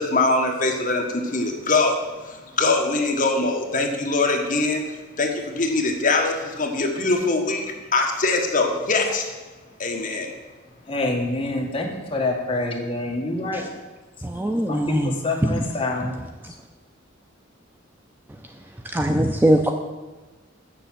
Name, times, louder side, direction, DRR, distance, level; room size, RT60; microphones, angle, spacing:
voice 1, 0.0-4.8 5.2-7.6 7.9-9.2 9.8-10.3, left 3 dB, 40° left, 1.2 m, -22 dB
voice 2, 10.9-13.7 14.7-16.2, left 2 dB, 25° left, 1.5 m, -26 dB
voice 3, 14.2-15.6 18.8-19.7, right 1 dB, 10° right, 0.4 m, -21 dB
7.0 x 6.8 x 7.5 m
head